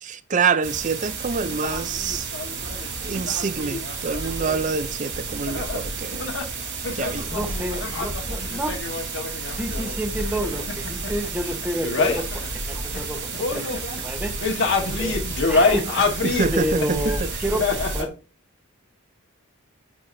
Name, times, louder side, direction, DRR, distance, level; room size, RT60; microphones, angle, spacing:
voice 1, 0.0-2.3 2.7-6.3 6.9-7.4 16.2-17.3, right 5 dB, 35° right, 0.4 m, -26 dB
sound 1, 0.6-18.0, right 5 dB, 60° right, 3.6 m, -33 dB
sound 2, 1.2-18.1, left 3 dB, 60° left, 1.3 m, -28 dB
voice 2, 7.3-8.8 9.6-13.7 14.0-14.3 15.0-15.9 16.5-18.1, right 1 dB, 10° right, 1.0 m, -29 dB
9.6 x 4.6 x 2.6 m
head